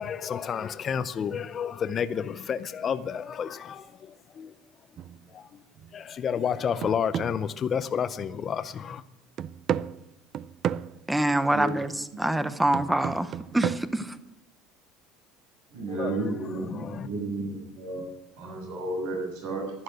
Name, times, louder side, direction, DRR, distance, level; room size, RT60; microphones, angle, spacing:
voice 1, 0.0-4.5 5.3-5.6 5.9-9.0 15.9-17.1, left 7 dB, 30° left, 0.5 m, -31 dB
sound 1, 5.0-5.3 5.8-5.9 6.4-8.4 8.8-8.9 9.4-11.0 11.7-11.9 12.7-13.8, right 9 dB, 40° right, 0.4 m, -33 dB
voice 2, 11.1-11.9 12.2-14.1, right 1 dB, 5° right, 0.7 m, -25 dB
voice 3, 15.7-18.0 18.4-19.7, right 2 dB, 80° right, 6.4 m, -32 dB
11.5 x 11.5 x 7.9 m
cardioid pair, 160°, 0 cm